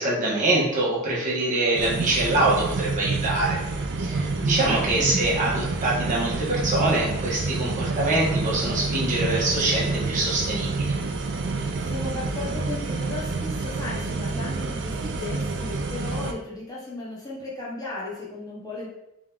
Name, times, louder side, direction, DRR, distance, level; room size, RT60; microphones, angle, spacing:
voice 1, 0.0-3.6 4.0-10.9, right 2 dB, 35° right, -6 dB, 1.3 m, -24 dB
sound 1, 1.7-16.3, right 3 dB, 55° right, 0.5 m, -28 dB
voice 2, 5.0-5.3 11.8-18.9, left 2 dB, 15° left, -6 dB, 0.8 m, -35 dB
3.6 x 3.0 x 3.6 m, 0.88 s
head